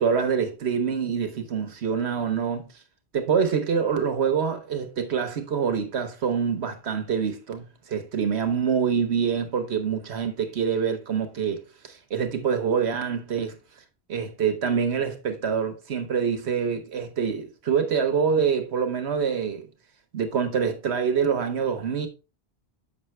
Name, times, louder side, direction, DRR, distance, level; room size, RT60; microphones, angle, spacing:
voice 1, 0.0-2.7 3.1-13.5 14.1-19.7 20.1-22.1, right 6 dB, 80° right, 1.3 m, -26 dB
7.3 x 5.7 x 3.1 m
omnidirectional pair, 1.1 m